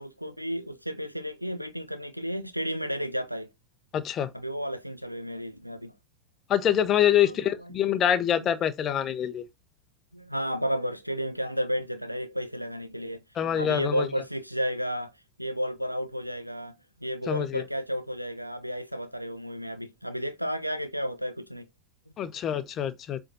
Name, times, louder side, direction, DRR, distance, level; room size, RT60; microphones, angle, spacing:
voice 1, 0.0-3.5 4.3-5.9 7.1-7.7 8.3-8.5 10.1-13.2 13.6-15.1 15.4-21.7, equal, 90° right, 1.1 m, -32 dB
voice 2, 3.9-4.3 6.5-9.4 13.4-14.1 17.3-17.6 22.2-23.2, left 10 dB, 30° left, 1.2 m, -25 dB
7.8 x 3.8 x 4.1 m
figure-of-eight pair, 90°, 0 cm